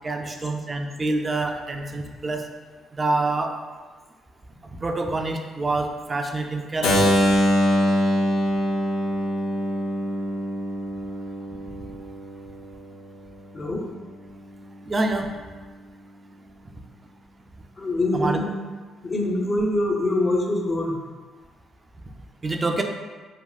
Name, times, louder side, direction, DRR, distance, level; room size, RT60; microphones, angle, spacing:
voice 1, 0.0-2.4 3.0-3.5 4.8-7.1 14.8-15.3 18.1-18.4 22.4-22.8, right 2 dB, 30° right, 3 dB, 0.3 m, -26 dB
Keyboard (musical), 6.8-12.7, equal, 85° left, 0.4 m, -23 dB
voice 2, 17.8-18.5 19.0-21.0, left 1 dB, 30° left, -1 dB, 0.5 m, -24 dB
3.4 x 2.3 x 2.3 m, 1.4 s
cardioid pair, 90°, 0 cm